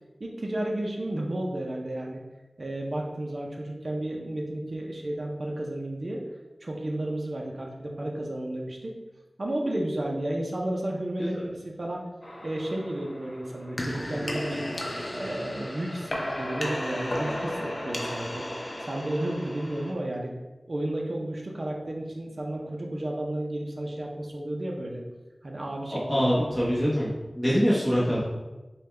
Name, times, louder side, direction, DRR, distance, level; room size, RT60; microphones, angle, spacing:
voice 1, 0.2-2.2 2.6-6.2 6.6-8.9 9.4-12.1 12.4-14.7 15.1-18.5 18.8-20.3 20.7-25.0 25.4-26.5, right 1 dB, 60° right, -1 dB, 0.5 m, -32 dB
sound 1, 12.2-19.9, left 1 dB, 50° left, 0.6 m, -34 dB
voice 2, 25.9-27.1 27.3-28.2, equal, 5° left, -7 dB, 0.9 m, -24 dB
5.1 x 2.3 x 3.3 m, 1.1 s
wide cardioid pair, 65°, 0 cm